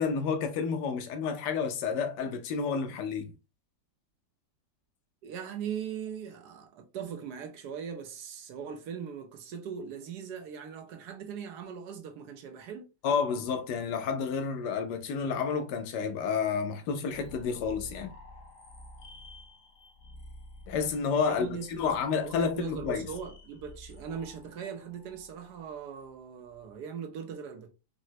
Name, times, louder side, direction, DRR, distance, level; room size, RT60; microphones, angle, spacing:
voice 1, 0.0-3.3 13.0-18.1 20.7-21.5 21.8-23.1, left 6 dB, 85° left, 1.2 m, -30 dB
voice 2, 5.2-12.9 21.2-22.0 22.2-27.7, right 7 dB, 80° right, 1.2 m, -40 dB
sound 1, 17.1-26.7, left 1 dB, 55° left, 1.2 m, -51 dB
4.0 x 2.0 x 2.7 m
omnidirectional pair, 1.8 m